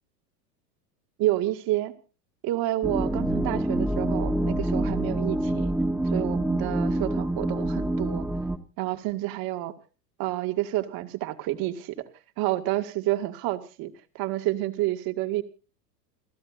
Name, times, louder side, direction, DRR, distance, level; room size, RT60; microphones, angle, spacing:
voice 1, 1.2-1.9 2.4-5.7 6.1-8.3 8.8-9.7 10.2-12.1 12.4-15.4, right 16 dB, 45° right, 8 dB, 2.2 m, -29 dB
sound 1, 2.8-8.6, right 1 dB, 5° right, 1.4 m, -26 dB
30.0 x 13.5 x 2.5 m, 0.35 s
hypercardioid pair, 115°, 49 cm